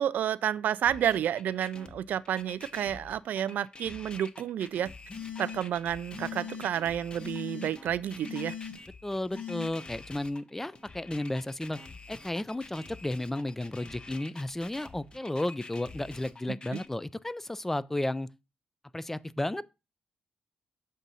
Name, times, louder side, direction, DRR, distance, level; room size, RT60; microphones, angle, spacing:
voice 1, 0.0-4.9 5.4-8.5 16.7-16.8, right 10 dB, 75° right, 0.3 m, -30 dB
sound 1, 0.9-16.9, left 3 dB, 30° left, 0.8 m, -48 dB
sound 2, 5.1-5.8 6.1-6.7 7.2-7.7 8.2-8.7 9.3-9.7, left 7 dB, 55° left, 1.8 m, -39 dB
voice 2, 9.0-11.8 12.1-18.3 18.9-19.6, left 1 dB, 10° left, 0.3 m, -33 dB
7.4 x 2.7 x 5.4 m
cardioid pair, 65°, 3 cm